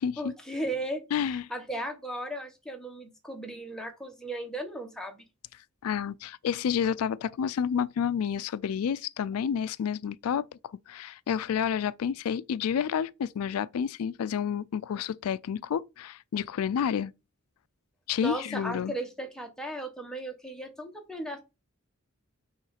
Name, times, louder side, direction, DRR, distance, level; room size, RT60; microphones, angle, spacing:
voice 1, 0.2-5.2 18.2-21.4, right 1 dB, 5° left, 1.0 m, -36 dB
voice 2, 1.1-1.5 5.8-17.1 18.1-18.9, left 8 dB, 80° left, 0.3 m, -30 dB
6.2 x 3.2 x 5.7 m
head